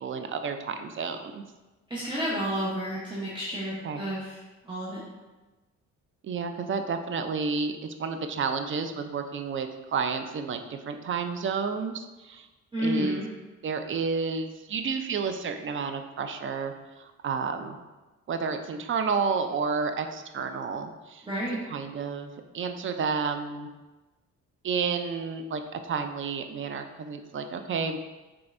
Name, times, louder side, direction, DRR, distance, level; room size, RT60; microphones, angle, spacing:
voice 1, 0.0-1.4 3.8-4.1 6.2-12.5 12.8-13.2 13.6-17.8 18.3-21.3 21.7-23.7 24.6-28.0, right 5 dB, 40° right, 7 dB, 0.4 m, -31 dB
voice 2, 1.9-4.4 4.6-5.0 12.7-13.3 21.3-21.6, equal, 15° right, -7 dB, 0.8 m, -31 dB
5.2 x 3.4 x 2.5 m, 1.2 s
cardioid pair, 90°, 30 cm